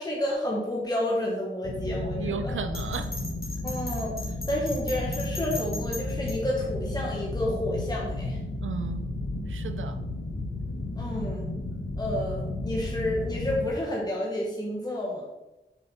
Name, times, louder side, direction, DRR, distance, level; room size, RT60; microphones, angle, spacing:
voice 1, 0.0-2.5 3.6-8.4 11.0-11.5 12.0-15.3, left 1 dB, 20° left, -3 dB, 1.6 m, -30 dB
sound 1, 1.6-13.7, left 2 dB, 90° left, 0.9 m, -33 dB
voice 2, 2.1-3.1 8.6-9.1 9.5-10.0, right 6 dB, 85° right, 9 dB, 0.4 m, -34 dB
Bell, 2.7-6.3, left 2 dB, 50° left, 2.8 m, -38 dB
7.2 x 5.1 x 4.4 m, 0.98 s
wide cardioid pair, 55°, 20 cm